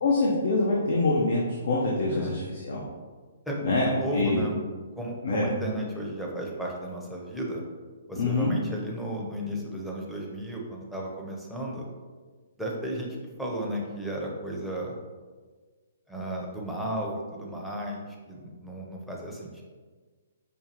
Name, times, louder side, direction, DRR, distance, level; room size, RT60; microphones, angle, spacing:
voice 1, 0.0-2.8 3.6-4.4 5.2-5.4 8.2-8.5, left 2 dB, 75° left, -3 dB, 0.6 m, -25 dB
voice 2, 3.8-4.6 5.0-7.6 8.1-11.8 12.6-14.9 16.1-19.6, right 1 dB, ahead, -3 dB, 0.6 m, -34 dB
5.2 x 2.3 x 2.9 m, 1.4 s
hypercardioid pair, 145°, 0 cm